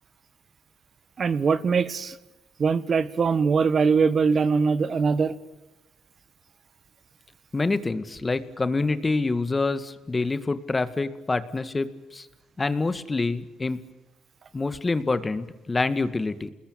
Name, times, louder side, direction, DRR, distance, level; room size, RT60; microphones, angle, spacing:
voice 1, 1.2-2.2 2.6-5.3, right 5 dB, 45° right, 15 dB, 1.4 m, -22 dB
voice 2, 7.5-12.3 12.6-13.8 14.5-16.5, left 3 dB, 25° left, 12 dB, 1.9 m, -26 dB
29.0 x 20.5 x 8.9 m, 1.0 s
cardioid pair, 90°, 0 cm